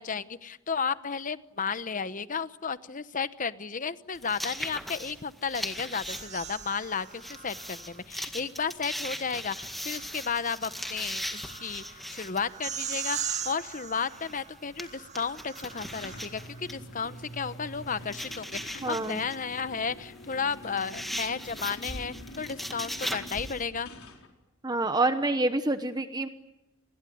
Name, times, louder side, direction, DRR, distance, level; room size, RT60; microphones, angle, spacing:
voice 1, 0.0-23.9, left 5 dB, 40° left, 14 dB, 0.9 m, -33 dB
sound 1, 4.1-23.6, equal, ahead, 1.9 m, -40 dB
sound 2, 6.0-8.0 9.5-16.6, right 8 dB, 35° right, 1.9 m, -40 dB
sound 3, 15.7-24.3, equal, 85° left, 4.7 m, -46 dB
voice 2, 18.8-19.2 24.6-26.3, right 2 dB, 20° right, 9 dB, 1.0 m, -27 dB
30.0 x 21.5 x 9.3 m, 0.97 s
head